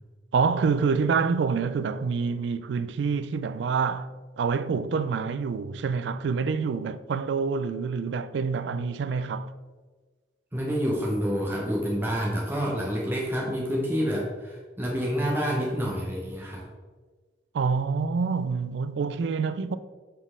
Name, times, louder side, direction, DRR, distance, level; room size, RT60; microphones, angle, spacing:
voice 1, 0.3-4.1 4.4-9.5 17.5-19.8, right 5 dB, 75° right, 0.3 m, -27 dB
voice 2, 10.5-16.6, equal, 10° right, 0.8 m, -28 dB
7.2 x 4.1 x 3.6 m
head